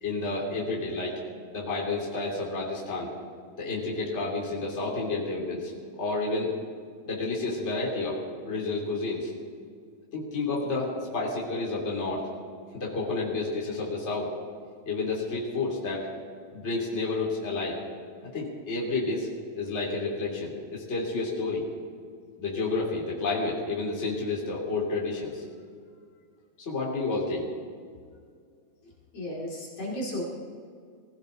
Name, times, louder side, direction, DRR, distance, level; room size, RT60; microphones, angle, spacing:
voice 1, 0.0-1.2 1.5-3.1 3.6-6.5 7.0-8.2 8.4-9.3 10.1-12.2 12.7-14.3 14.9-16.1 16.5-17.8 18.2-19.3 19.5-21.6 22.4-25.4 26.6-27.5, left 3 dB, 25° left, -4 dB, 3.1 m, -30 dB
voice 2, 29.1-30.2, left 1 dB, 55° left, -4 dB, 3.5 m, -34 dB
21.0 x 15.5 x 4.0 m, 2.1 s
omnidirectional pair, 3.3 m